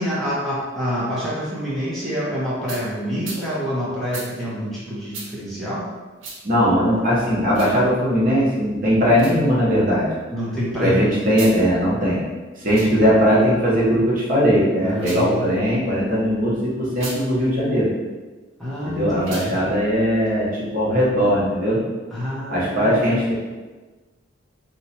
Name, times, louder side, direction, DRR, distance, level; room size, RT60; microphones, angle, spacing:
voice 1, 0.0-5.8 10.3-11.2 14.8-15.8 18.6-19.7 22.1-23.2, equal, ahead, -9 dB, 0.8 m, -27 dB
sound 1, 2.7-2.8 3.2-3.4 4.1-4.3 5.1-5.3 6.2-6.4 7.5-7.7 9.1-9.4 11.3-11.6 12.6-12.9 14.9-15.3 16.9-17.2 19.2-19.5, right 3 dB, 80° right, 0.8 m, -35 dB
voice 2, 6.4-10.1 10.8-12.2 12.6-17.9 18.8-21.8 22.5-23.3, equal, 45° right, -6 dB, 1.0 m, -19 dB
2.9 x 2.4 x 4.1 m, 1.3 s
head